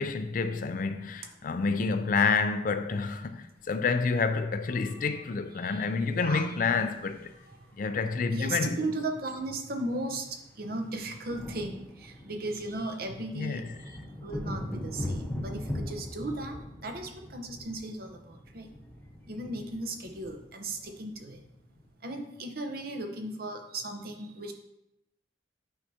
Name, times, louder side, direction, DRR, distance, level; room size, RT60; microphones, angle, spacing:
voice 1, 0.0-7.3 7.8-8.9 13.3-13.7, left 4 dB, 45° left, 0.4 m, -29 dB
voice 2, 5.6-6.4 7.5-7.6 8.3-10.3 10.6-16.5 16.8-18.7 19.3-21.4 22.0-24.5, right 2 dB, 55° right, 0.8 m, -36 dB
sound 1, 6.1-7.6 9.0-9.1 9.2-9.5 9.8-21.8, left 1 dB, 10° left, 1.0 m, -41 dB
8.9 x 4.7 x 2.8 m
head